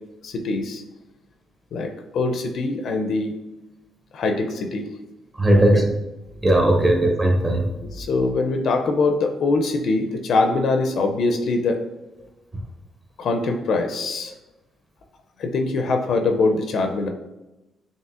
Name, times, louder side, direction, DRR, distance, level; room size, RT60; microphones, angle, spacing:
voice 1, 0.2-0.8 1.7-3.3 4.1-4.9 5.5-5.8 7.9-11.8 13.2-14.3 15.4-17.1, left 3 dB, 65° left, 5 dB, 0.4 m, -23 dB
voice 2, 5.4-5.8 6.4-7.7, right 1 dB, 30° right, 1 dB, 1.0 m, -17 dB
5.4 x 2.8 x 2.4 m, 0.99 s
cardioid pair, 90°, 0 cm